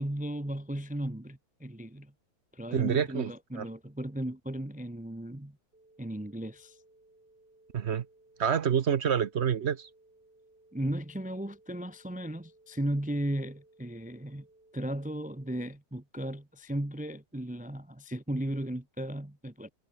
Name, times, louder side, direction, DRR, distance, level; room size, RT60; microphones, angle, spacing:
voice 1, 0.0-2.1 2.5-5.6 6.0-6.8 10.7-14.5 14.7-19.7, right 1 dB, 5° right, 1.0 m, -35 dB
voice 2, 2.7-3.3 3.6-3.7 7.7-8.1 8.4-9.9, right 8 dB, 50° right, 0.9 m, -27 dB
sound 1, 5.7-15.7, right 2 dB, 35° right, 4.6 m, -62 dB
omnidirectional pair, 1.7 m